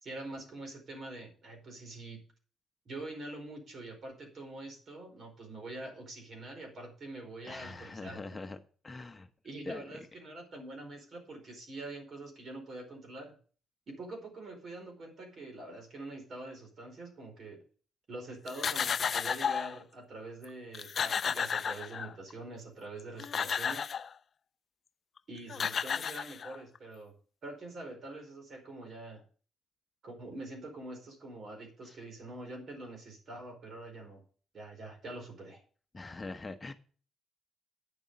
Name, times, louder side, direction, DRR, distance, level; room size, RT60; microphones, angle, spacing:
voice 1, 0.0-2.2 2.8-8.4 9.4-13.3 13.9-17.6 18.1-23.9 25.3-27.1 27.4-29.2 30.0-34.2 34.5-35.6, right 2 dB, 50° right, 4.9 m, -45 dB
voice 2, 7.4-8.6 8.8-9.3 9.7-9.8 35.9-36.7, left 3 dB, 25° left, 1.0 m, -42 dB
sound 1, 18.5-19.8 20.4-20.5 20.7-22.3 23.0-24.1 25.2-25.3 25.5-26.8, left 7 dB, 50° left, 0.5 m, -33 dB
9.6 x 7.1 x 7.0 m
cardioid pair, 90°, 0 cm